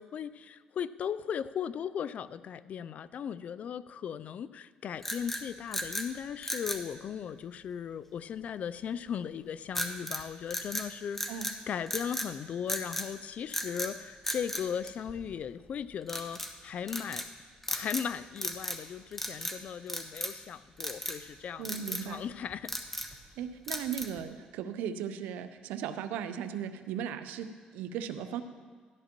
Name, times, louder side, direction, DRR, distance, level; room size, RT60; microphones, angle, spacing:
voice 1, 0.0-17.3 17.7-22.7, left 8 dB, 55° left, 16 dB, 0.4 m, -37 dB
sound 1, 5.0-6.1 6.4-6.9 9.7-10.2 10.5-11.6 11.9-12.3 12.7-13.1 13.5-13.9 14.2-15.4 16.1-16.5 16.9-17.3 17.6-18.1 18.4-18.9 19.1-19.6 19.9-20.4 20.8-21.2 21.6-22.1 22.5-23.2 23.7-24.2, left 1 dB, 10° left, 1.0 m, -36 dB
voice 2, 21.6-22.2 23.4-28.4, right 8 dB, 90° right, 10 dB, 0.6 m, -37 dB
13.5 x 11.5 x 3.0 m, 1.6 s
cardioid pair, 85°, 3 cm